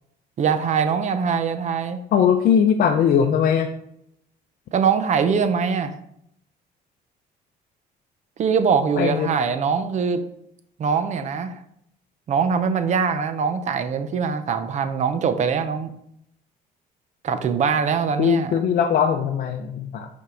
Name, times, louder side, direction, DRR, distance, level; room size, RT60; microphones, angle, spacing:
voice 1, 0.4-2.0 4.7-6.0 8.4-10.2 10.8-11.6 12.3-15.9 17.2-18.5, right 6 dB, 45° right, 10 dB, 0.7 m, -22 dB
voice 2, 2.1-3.7 9.0-9.3 18.2-20.1, left 7 dB, 60° left, 3 dB, 0.6 m, -20 dB
5.6 x 4.6 x 3.8 m, 0.74 s
cardioid pair, 110°, 17 cm